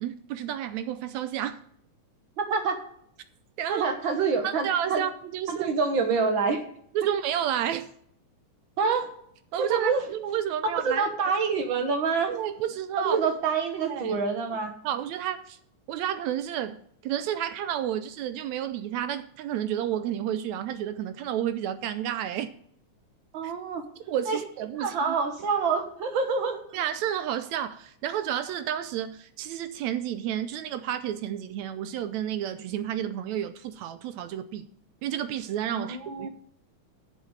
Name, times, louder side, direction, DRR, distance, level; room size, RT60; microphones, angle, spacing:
voice 1, 0.0-1.6 3.6-3.9 4.4-5.7 6.9-7.9 9.5-11.1 12.3-13.2 13.9-14.2 14.8-15.6 15.9-22.5 23.4-23.5 24.1-25.2 26.7-34.7 35.0-36.3, right 10 dB, 80° right, 1.7 m, -31 dB
voice 2, 2.4-2.8 3.7-5.0 5.5-6.6 8.8-9.1 9.6-10.0 10.7-12.3 13.0-14.7 23.3-23.8 24.3-24.4 24.8-26.6 35.7-36.3, right 5 dB, 60° right, 1.3 m, -26 dB
7.5 x 7.2 x 7.9 m
omnidirectional pair, 3.7 m